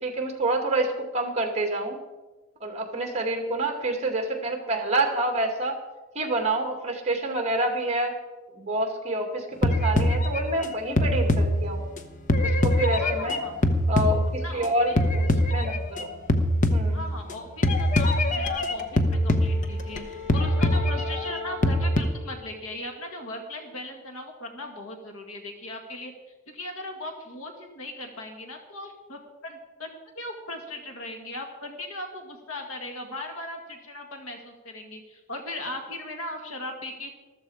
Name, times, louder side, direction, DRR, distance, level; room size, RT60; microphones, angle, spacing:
voice 1, 0.0-2.0 2.6-5.8 6.1-8.1 8.6-11.9 12.4-13.4 13.9-15.2 15.5-16.1 16.7-17.0, right 2 dB, 30° right, 3 dB, 2.3 m, -27 dB
sound 1, 9.6-12.0 12.3-14.6 15.0-16.0 16.3-17.3 17.6-20.0 20.3-22.0, left 1 dB, 35° left, 1.0 m, -23 dB
voice 2, 13.0-13.6 14.4-15.0 16.9-26.1 26.5-37.1, left 1 dB, 70° left, 4 dB, 1.9 m, -38 dB
Wind instrument woodwind instrument, 19.0-23.5, left 4 dB, ahead, 4.1 m, -40 dB
14.0 x 13.5 x 4.9 m, 1.2 s
head